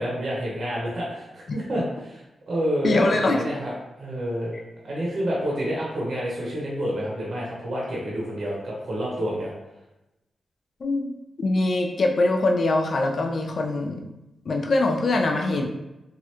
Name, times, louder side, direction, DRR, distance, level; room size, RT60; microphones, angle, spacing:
voice 1, 0.0-2.2 2.5-3.7 4.0-4.6 4.8-9.5, equal, 50° right, -5 dB, 0.8 m, -28 dB
voice 2, 2.8-3.4 10.8-14.1 14.5-15.7, left 2 dB, 45° left, 3 dB, 0.4 m, -23 dB
3.1 x 2.4 x 2.9 m, 0.96 s
wide cardioid pair, 175°, 0 cm